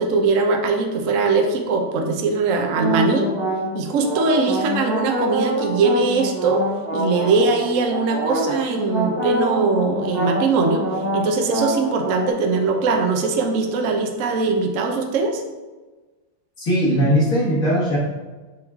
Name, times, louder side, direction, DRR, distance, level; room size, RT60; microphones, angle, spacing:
voice 1, 0.0-3.3 3.7-6.6 6.9-10.8 11.1-15.4, right 3 dB, 60° right, 3 dB, 0.9 m, -21 dB
sound 1, 2.7-12.3, right 1 dB, 40° right, 1.8 m, -26 dB
voice 2, 16.6-18.0, equal, 50° left, -8 dB, 1.9 m, -19 dB
6.2 x 4.7 x 3.5 m, 1.3 s
omnidirectional pair, 2.0 m